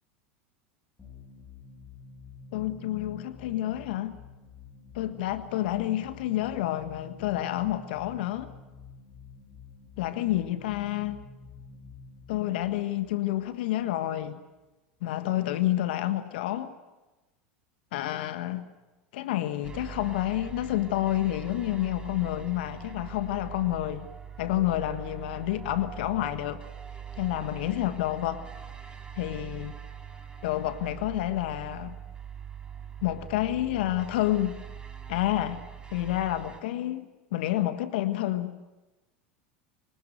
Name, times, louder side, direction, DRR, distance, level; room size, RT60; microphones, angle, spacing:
sound 1, 1.0-14.3, left 5 dB, 15° left, 6.8 m, -49 dB
voice 1, 2.5-4.2 4.9-8.5 10.0-11.2 12.3-14.4 15.0-16.7 17.9-18.7 19.1-24.1 24.4-26.6 27.2-28.4 29.2-29.8 30.4-32.0 33.0-34.6 35.1-35.6 35.9-38.6, left 14 dB, 70° left, 10 dB, 1.5 m, -29 dB
sound 2, 19.6-36.6, right 7 dB, 15° right, 3.9 m, -43 dB
25.5 x 18.0 x 9.2 m, 1.1 s
hypercardioid pair, 90°, 6 cm